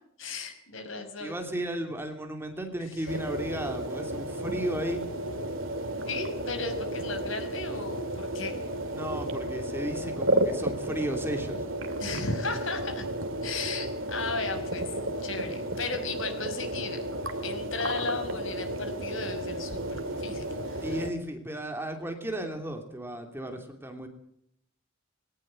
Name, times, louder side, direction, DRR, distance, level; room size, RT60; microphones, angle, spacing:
voice 1, 0.2-1.3 2.9-3.1 6.1-8.6 12.0-13.1 13.4-14.9 15.2-17.0 17.4-21.0, left 4 dB, 70° left, 7 dB, 5.1 m, -35 dB
voice 2, 1.2-5.1 8.9-11.6 20.8-24.1, right 1 dB, 10° right, 4 dB, 2.9 m, -34 dB
sound 1, 3.1-21.1, right 1 dB, 75° right, 2.4 m, -33 dB
21.0 x 18.5 x 7.8 m, 0.71 s
head